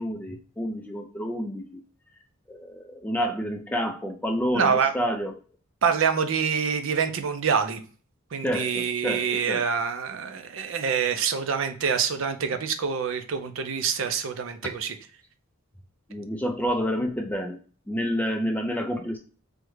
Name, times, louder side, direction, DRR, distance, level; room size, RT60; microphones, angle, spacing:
voice 1, 0.0-1.8 2.5-5.4 8.4-9.7 16.1-17.6 17.9-19.2, equal, 10° left, 4 dB, 0.3 m, -29 dB
voice 2, 4.5-4.9 5.8-7.8 8.3-15.0, right 6 dB, 65° right, 8 dB, 0.5 m, -26 dB
3.5 x 2.1 x 3.0 m, 0.39 s
head